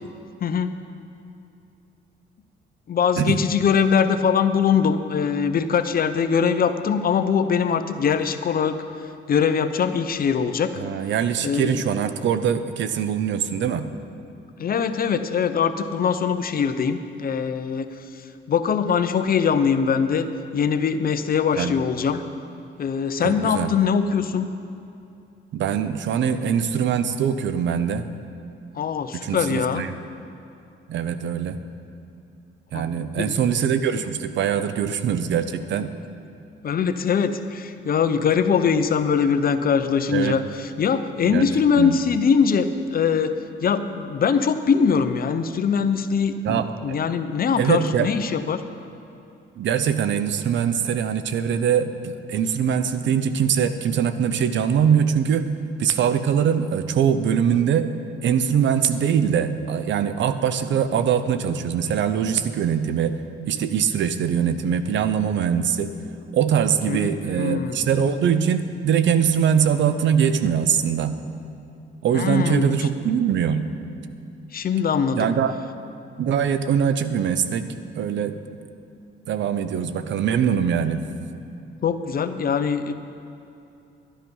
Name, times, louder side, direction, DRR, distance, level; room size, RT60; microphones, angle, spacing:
voice 1, 0.4-0.7 2.9-8.8 9.3-10.8 11.4-11.8 14.6-17.9 18.5-20.2 20.5-22.3 22.8-24.5 28.7-29.8 32.7-33.4 36.6-43.3 43.6-48.6 66.9-67.8 72.1-72.9 74.5-75.3 81.8-82.9, left 6 dB, 50° left, 10 dB, 0.7 m, -22 dB
voice 2, 10.8-13.9 21.6-21.8 23.2-23.7 25.5-28.0 29.1-29.9 30.9-31.6 32.7-35.9 40.1-40.4 41.3-41.5 41.8-42.0 46.4-47.0 47.6-48.1 49.6-55.5 55.8-57.9 58.2-63.2 63.4-65.9 66.3-71.2 72.0-73.7 75.2-75.5 76.2-77.7 78.0-78.4 79.3-81.0, right 8 dB, 70° right, 11 dB, 0.7 m, -22 dB
12.0 x 10.5 x 5.5 m, 2.7 s
cardioid pair, 90°, 20 cm